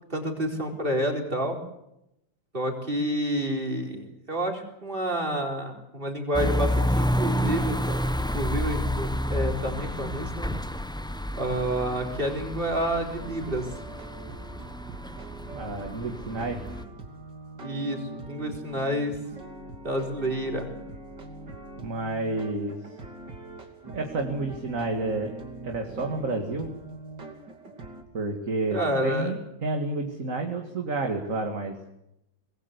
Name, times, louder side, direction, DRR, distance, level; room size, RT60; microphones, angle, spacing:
voice 1, 0.1-1.6 2.5-10.5 11.4-13.7 17.6-19.2 19.8-20.7 28.7-29.4, right 1 dB, 30° right, 2 dB, 4.5 m, -29 dB
sound 1, 6.3-16.8, equal, 5° left, 0.4 m, -30 dB
sound 2, 13.2-28.0, right 2 dB, 70° right, 3.6 m, -43 dB
voice 2, 15.5-16.6 21.8-22.7 23.9-25.3 25.6-26.7 28.1-31.7, right 3 dB, 45° right, 3 dB, 2.5 m, -30 dB
25.0 x 20.5 x 8.2 m, 0.84 s
omnidirectional pair, 2.0 m